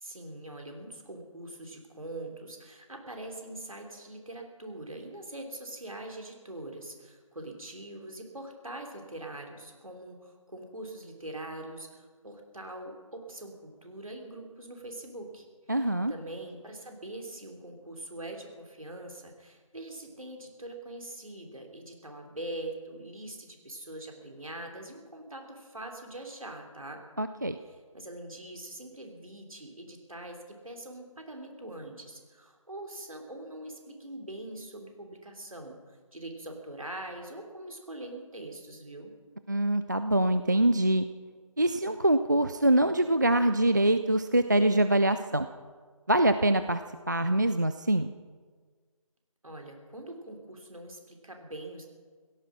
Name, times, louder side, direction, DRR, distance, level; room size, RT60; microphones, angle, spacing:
voice 1, 0.0-15.5 15.8-27.0 27.7-39.1 49.4-51.8, right 1 dB, 70° right, 2 dB, 3.4 m, -43 dB
voice 2, 15.7-16.1 27.2-27.6 39.5-41.1 41.6-45.5 46.1-46.8 47.1-48.1, right 1 dB, 30° right, 10 dB, 0.4 m, -24 dB
16.5 x 14.0 x 6.2 m, 1.5 s
figure-of-eight pair, 160°, 18 cm